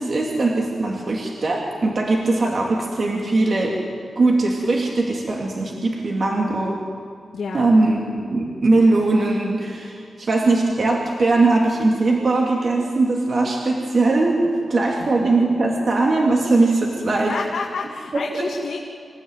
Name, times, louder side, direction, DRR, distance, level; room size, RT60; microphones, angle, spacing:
voice 1, 0.0-3.8 4.2-6.8 7.5-14.4 14.7-17.3 18.4-18.5, right 2 dB, 45° right, -1 dB, 2.7 m, -20 dB
voice 2, 7.3-7.7 14.9-15.3 17.3-18.8, left 5 dB, 65° left, -1 dB, 2.1 m, -30 dB
26.5 x 16.5 x 9.2 m, 2.3 s
wide cardioid pair, 150°, 0 cm